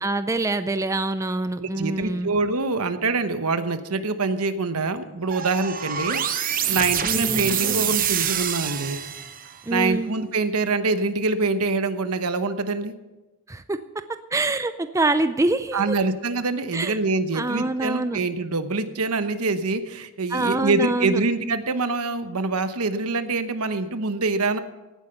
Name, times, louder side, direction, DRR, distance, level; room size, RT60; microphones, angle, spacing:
voice 1, 0.0-2.3 7.0-7.5 9.7-10.1 13.5-13.8 14.3-16.0 16.7-17.0 17.3-18.2 20.3-21.2, right 2 dB, 15° right, 11 dB, 0.4 m, -25 dB
voice 2, 1.6-6.2 6.7-9.0 9.7-12.9 15.7-24.6, right 3 dB, 85° right, 10 dB, 1.0 m, -25 dB
sound 1, 5.3-9.6, right 9 dB, 40° right, 0.8 m, -26 dB
16.5 x 9.3 x 5.7 m, 1.1 s
head